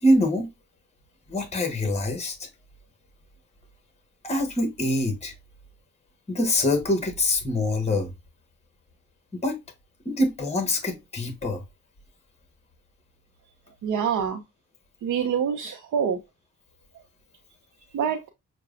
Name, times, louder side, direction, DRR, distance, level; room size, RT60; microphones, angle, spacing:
voice 1, 0.0-0.5 1.3-2.5 4.2-5.3 6.3-8.1 9.3-9.6 10.0-11.6, left 1 dB, 20° left, 1.2 m, -24 dB
voice 2, 13.8-14.4 15.0-16.2 16.9-17.0 17.9-18.2, right 7 dB, 65° right, 0.7 m, -26 dB
6.5 x 2.3 x 2.4 m
cardioid pair, 80°, 32 cm